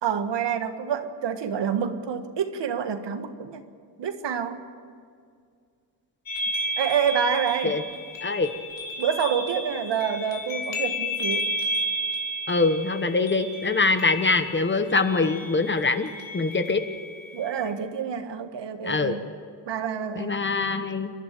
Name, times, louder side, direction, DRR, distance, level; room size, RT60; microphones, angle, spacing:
voice 1, 0.0-3.6 4.0-4.6 6.8-7.8 9.0-11.5 17.3-19.3 19.7-20.4, right 7 dB, 65° right, 8 dB, 1.7 m, -27 dB
sound 1, 6.3-17.7, equal, 80° left, 3.3 m, -32 dB
voice 2, 12.5-16.8 18.8-19.2 20.2-21.1, left 3 dB, 25° left, 9 dB, 1.1 m, -24 dB
28.5 x 11.5 x 9.0 m, 2.1 s
cardioid pair, 115°, 46 cm